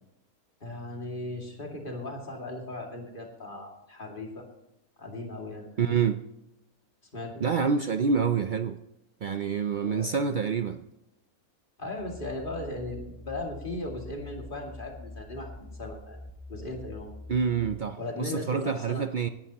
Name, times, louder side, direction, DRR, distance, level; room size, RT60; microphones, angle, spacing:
voice 1, 0.6-4.4 5.0-5.9 7.1-7.5 9.8-10.1 11.8-16.2 16.5-17.2 18.0-19.0, left 2 dB, 35° left, 1 dB, 2.6 m, -37 dB
voice 2, 5.8-6.2 7.4-8.8 9.2-10.8 17.3-19.3, right 6 dB, 90° right, 9 dB, 0.4 m, -27 dB
sound 1, 12.0-17.7, left 1 dB, 5° right, 0.4 m, -45 dB
18.0 x 11.0 x 2.9 m, 0.90 s
omnidirectional pair, 1.6 m